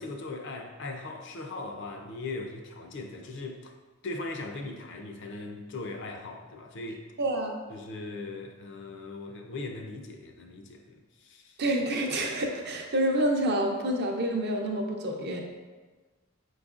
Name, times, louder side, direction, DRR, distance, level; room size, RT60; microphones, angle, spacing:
voice 1, 0.0-3.7 4.0-7.0 7.7-11.6, left 2 dB, 60° left, 4 dB, 0.5 m, -39 dB
voice 2, 7.2-7.6 11.6-15.4, right 1 dB, 50° right, 2 dB, 0.6 m, -28 dB
5.2 x 3.9 x 2.4 m, 1.3 s
head